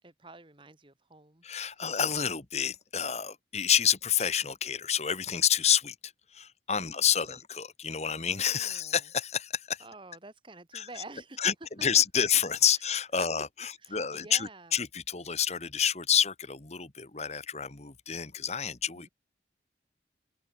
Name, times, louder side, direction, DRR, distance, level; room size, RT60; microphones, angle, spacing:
voice 1, 0.0-1.9 6.8-7.4 8.5-9.0 9.8-11.5 11.8-12.0 12.7-12.8 13.2-13.3 13.6-14.8 19.0-19.1, right 2 dB, 30° right, 1.7 m, -49 dB
voice 2, 1.4-9.8 10.7-10.9 11.4-11.5 11.8-19.1, left 8 dB, 35° left, 1.5 m, -29 dB
open air
head